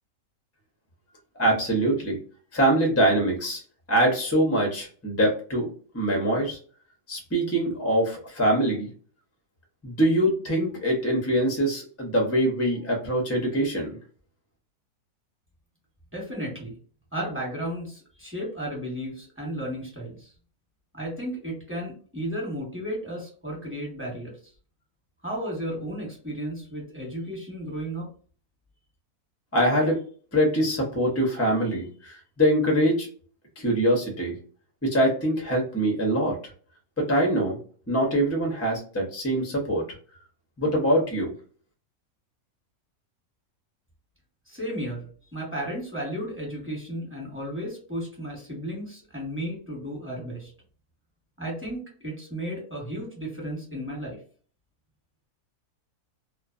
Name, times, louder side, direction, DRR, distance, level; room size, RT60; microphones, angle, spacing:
voice 1, 1.4-2.2 2.5-3.6 3.9-5.7 5.9-6.6 7.1-8.9 9.8-14.0 29.5-30.0 30.3-33.1 33.6-34.3 34.8-36.4 37.0-37.6 37.9-39.8 40.6-41.3, right 1 dB, 20° left, 0 dB, 0.4 m, -23 dB
voice 2, 16.1-16.7 17.1-20.3 20.9-24.3 25.2-28.1 44.5-45.0 45.3-50.5 51.4-54.2, equal, 10° right, -3 dB, 1.0 m, -34 dB
2.5 x 2.3 x 2.4 m, 0.43 s
omnidirectional pair, 1.6 m